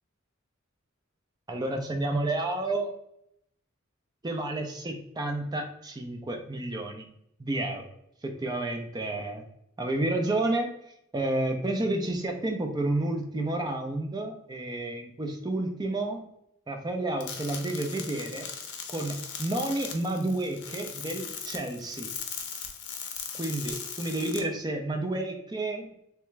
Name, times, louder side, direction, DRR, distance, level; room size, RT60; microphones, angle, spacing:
voice 1, 1.5-2.9 4.2-7.1 7.4-7.9 8.2-9.4 9.8-10.7 11.1-16.2 16.7-18.5 18.9-22.1 23.3-25.9, right 2 dB, 20° right, 3 dB, 0.5 m, -30 dB
sound 1, 17.2-24.4, left 6 dB, 55° left, 0.7 m, -39 dB
3.5 x 3.3 x 3.2 m, 0.74 s
head